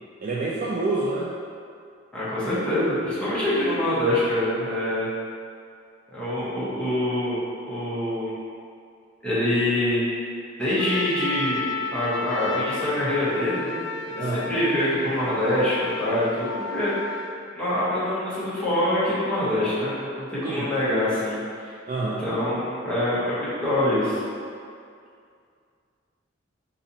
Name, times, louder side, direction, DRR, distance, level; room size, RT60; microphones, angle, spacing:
voice 1, 0.2-1.3 14.2-14.4 20.4-20.7 21.9-22.2, right 2 dB, 45° right, -6 dB, 0.4 m, -27 dB
voice 2, 2.1-5.1 6.1-7.4 7.7-8.3 9.2-10.2 10.6-13.8 14.1-16.9 17.5-21.7 22.2-24.2, left 1 dB, 5° left, -11 dB, 1.0 m, -25 dB
Trumpet, 10.8-17.4, left 4 dB, 70° left, 0.3 m, -32 dB
4.0 x 2.7 x 2.7 m, 2.3 s
head